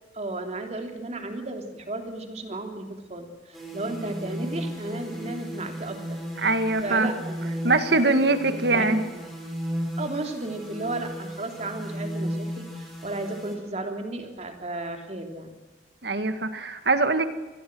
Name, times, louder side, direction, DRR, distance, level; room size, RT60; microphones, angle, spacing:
voice 1, 0.1-6.0 6.4-6.5 6.8-8.1 8.7-9.3 10.0-15.5, right 2 dB, 40° right, 4 dB, 3.4 m, -34 dB
sound 1, 3.5-13.5, equal, ahead, 6.6 m, -35 dB
voice 2, 6.4-7.1 7.6-9.0 16.0-17.3, right 3 dB, 60° right, 9 dB, 2.0 m, -22 dB
26.5 x 20.5 x 6.3 m, 1.2 s
head